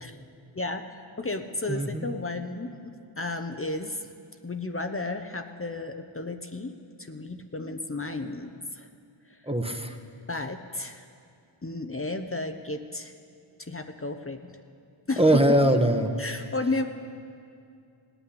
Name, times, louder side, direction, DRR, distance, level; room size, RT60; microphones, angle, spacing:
voice 1, 0.5-0.9 1.2-4.1 4.4-6.7 7.0-8.9 10.3-11.0 11.6-13.1 13.6-14.5 15.1-15.4 16.2-16.9, left 2 dB, 25° left, 6 dB, 0.9 m, -33 dB
voice 2, 1.7-2.0 9.5-9.9 15.2-16.1, right 1 dB, 10° right, 5 dB, 1.1 m, -22 dB
17.0 x 6.1 x 10.0 m, 2.4 s
cardioid pair, 40°, 50 cm